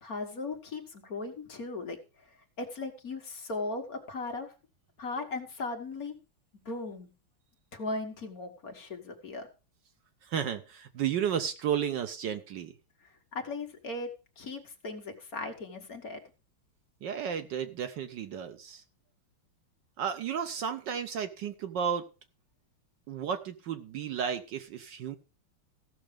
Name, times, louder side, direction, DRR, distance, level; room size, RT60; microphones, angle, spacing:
voice 1, 0.0-2.0 2.6-4.5 5.0-6.2 6.7-7.1 7.7-9.5 13.3-14.1 14.4-16.2, left 3 dB, 45° left, 4 dB, 1.8 m, -37 dB
voice 2, 10.2-12.7 17.0-18.8 20.0-22.1 23.1-25.2, right 8 dB, 65° right, 9 dB, 1.4 m, -33 dB
15.5 x 6.4 x 5.0 m, 0.32 s
omnidirectional pair, 2.3 m